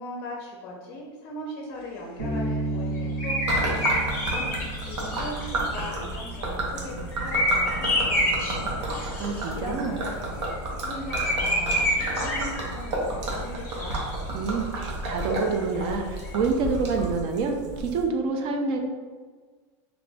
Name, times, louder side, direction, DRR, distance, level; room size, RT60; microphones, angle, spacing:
voice 1, 0.0-4.5 4.8-10.4 10.7-14.0, left 1 dB, 35° left, -1 dB, 0.5 m, -39 dB
Bass guitar, 2.2-5.9, right 2 dB, 55° right, 1.1 m, -32 dB
sound 1, 3.2-6.4 7.1-9.5 11.1-12.8 13.3-13.4 13.7-14.2 16.3-16.4, left 1 dB, 20° left, 0.9 m, -27 dB
Gurgling / Liquid, 3.5-18.0, right 2 dB, 80° right, 0.9 m, -31 dB
voice 2, 9.2-10.0 14.3-18.8, right 4 dB, 35° right, 3 dB, 0.4 m, -27 dB
2.9 x 2.5 x 3.4 m, 1.5 s
supercardioid pair, 165°, 15 cm